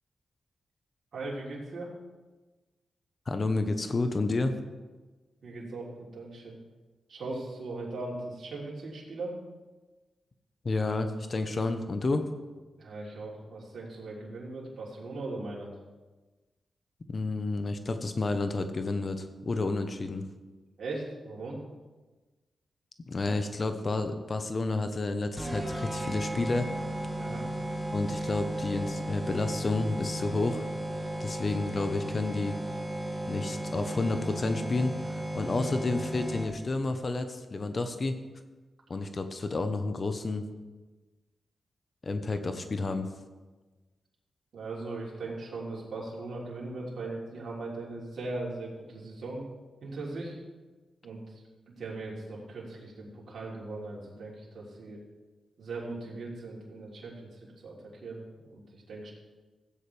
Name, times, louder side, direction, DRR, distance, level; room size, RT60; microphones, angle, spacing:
voice 1, 1.1-1.9 5.4-6.6 7.1-9.4 12.8-15.8 20.8-21.6 27.2-27.5 35.4-35.7 44.5-49.5 49.8-50.4 51.0-55.0 55.6-59.1, right 2 dB, 65° right, -4 dB, 3.5 m, -39 dB
voice 2, 3.3-4.6 10.6-12.3 17.1-20.2 23.1-26.7 27.9-30.7 31.2-32.6 33.3-38.2 38.9-40.5 42.0-43.1, left 3 dB, 45° left, 8 dB, 1.0 m, -30 dB
sound 1, 25.4-36.8, right 1 dB, 15° right, 2.1 m, -35 dB
15.5 x 8.8 x 3.4 m, 1.3 s
cardioid pair, 50°, 0 cm